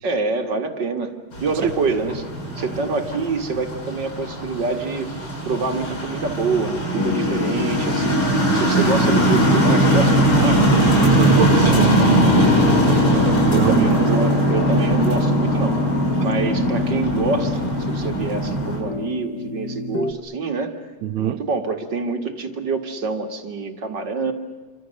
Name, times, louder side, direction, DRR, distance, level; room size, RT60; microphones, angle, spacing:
voice 1, 0.0-1.1 1.4-2.3 2.6-5.1 5.5-10.6 13.5-15.7 16.2-20.7 21.2-24.3, right 4 dB, 40° right, 1.9 m, -26 dB
sound 1, 1.3-18.8, right 2 dB, 35° left, 7.3 m, -20 dB
voice 2, 6.9-7.4 11.1-12.2 13.5-13.9 21.0-21.4, right 10 dB, 70° right, 2.2 m, -24 dB
sound 2, 7.0-20.1, left 8 dB, 55° left, 1.2 m, -26 dB
28.0 x 25.5 x 6.5 m
omnidirectional pair, 3.7 m